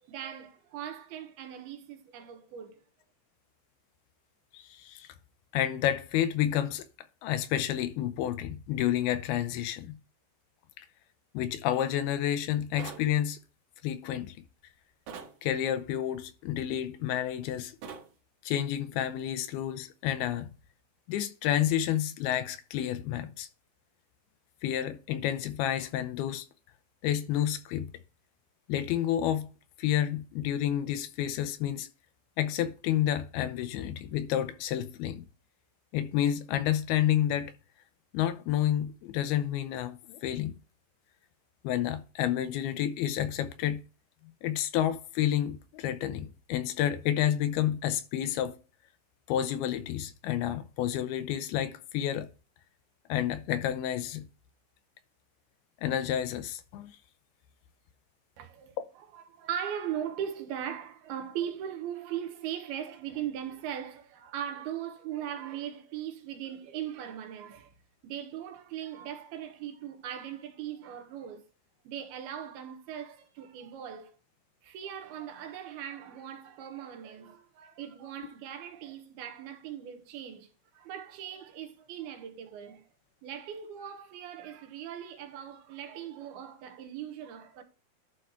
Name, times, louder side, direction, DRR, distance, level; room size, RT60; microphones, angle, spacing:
voice 1, 0.1-2.8 58.4-58.8 59.1-67.7 68.0-71.4 71.8-74.1 74.6-82.9 83.2-87.6, right 9 dB, 75° right, 3.0 m, -39 dB
voice 2, 4.5-5.1 5.5-6.9 7.2-10.0 10.8-10.9 11.3-13.4 13.8-14.4 15.4-17.8 18.4-20.5 21.1-23.5 24.6-26.5 27.0-27.9 28.7-29.5 29.8-31.9 32.4-35.3 35.9-37.5 38.1-40.6 41.6-43.8 44.4-48.6 49.3-52.3 53.1-54.3 55.8-56.9, left 11 dB, 80° left, 2.6 m, -30 dB
sound 1, 12.8-13.1 15.1-15.4 17.8-18.1, right 6 dB, 60° right, 2.5 m, -42 dB
11.5 x 4.0 x 4.5 m
omnidirectional pair, 4.6 m